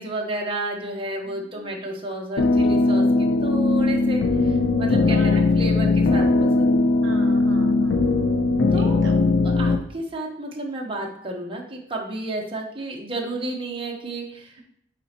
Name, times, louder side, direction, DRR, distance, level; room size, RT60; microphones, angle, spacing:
voice 1, 0.0-6.9 8.7-9.0 9.4-14.6, right 2 dB, 30° right, -1 dB, 1.0 m, -31 dB
voice 2, 1.2-1.9 5.1-5.4 7.0-8.1 8.7-9.2, right 1 dB, 75° right, 4 dB, 0.8 m, -37 dB
sound 1, 2.4-9.8, left 3 dB, 80° left, 0.6 m, -19 dB
8.3 x 4.2 x 2.9 m, 0.70 s
head